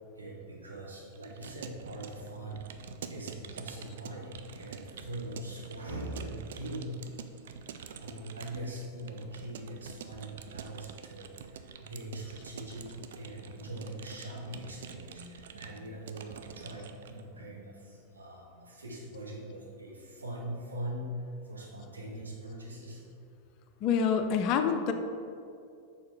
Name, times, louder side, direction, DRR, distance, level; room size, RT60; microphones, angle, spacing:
voice 1, 0.2-7.5 7.8-23.0, right 1 dB, 75° right, -3 dB, 1.3 m, -42 dB
Keyboard (musical) / Computer keyboard, 1.1-17.2, right 7 dB, 60° right, 0.4 m, -47 dB
voice 2, 23.8-24.9, left 6 dB, 40° left, 7 dB, 0.5 m, -26 dB
6.4 x 3.9 x 4.6 m, 2.4 s
figure-of-eight pair, 90°, 0 cm